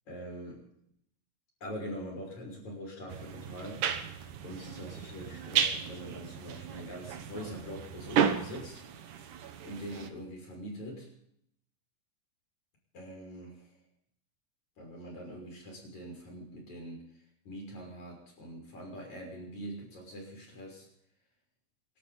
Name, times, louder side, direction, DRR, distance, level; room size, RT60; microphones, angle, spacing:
voice 1, 0.1-0.6 1.6-3.8 4.4-8.8 9.6-11.1 12.9-13.7 14.8-20.9, equal, 55° left, 0 dB, 7.2 m, -43 dB
sound 1, 3.1-10.1, right 7 dB, 65° right, 2.7 m, -34 dB
27.0 x 12.5 x 4.1 m, 0.73 s
omnidirectional pair, 4.0 m